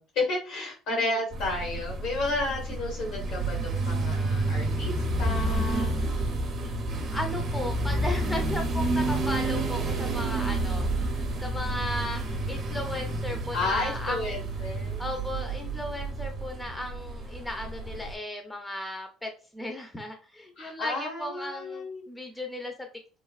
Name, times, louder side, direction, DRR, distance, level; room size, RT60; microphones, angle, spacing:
voice 1, 0.0-6.3 13.5-15.0 20.6-22.0, left 2 dB, 75° left, -1 dB, 1.4 m, -32 dB
voice 2, 0.9-1.2 6.9-14.4 15.0-22.9, left 1 dB, 10° left, 3 dB, 0.6 m, -36 dB
sound 1, 1.3-18.1, right 2 dB, 55° right, 0.7 m, -30 dB
3.1 x 2.2 x 2.4 m, 0.35 s
supercardioid pair, 90°, 0 cm